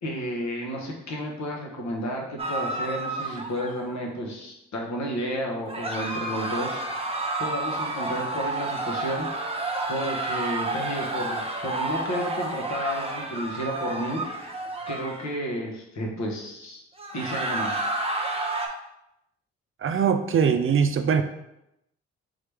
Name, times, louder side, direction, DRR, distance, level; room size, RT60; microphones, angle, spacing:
voice 1, 0.0-7.0 7.4-9.3 9.9-14.5 14.9-16.8 17.1-17.8, equal, 60° left, -1 dB, 1.2 m, -32 dB
sound 1, 2.4-3.9 5.7-15.3 17.0-18.7, right 2 dB, 20° right, 0.8 m, -30 dB
voice 2, 19.8-21.2, right 7 dB, 45° right, 8 dB, 0.4 m, -22 dB
3.9 x 3.2 x 3.3 m, 0.85 s
supercardioid pair, 50°, 31 cm